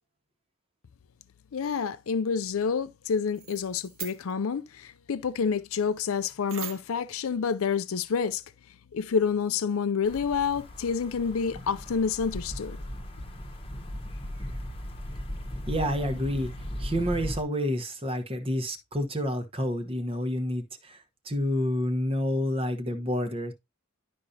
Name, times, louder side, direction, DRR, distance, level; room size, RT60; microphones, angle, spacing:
voice 1, 1.5-8.4 8.9-12.8, left 6 dB, 75° left, 0.5 m, -28 dB
sound 1, 3.3-4.4 6.5-7.1, right 8 dB, 65° right, 0.9 m, -40 dB
sound 2, 10.0-17.4, equal, 25° left, 1.2 m, -37 dB
voice 2, 15.7-16.5 16.8-23.5, equal, 25° right, 1.1 m, -29 dB
11.5 x 5.1 x 2.7 m
head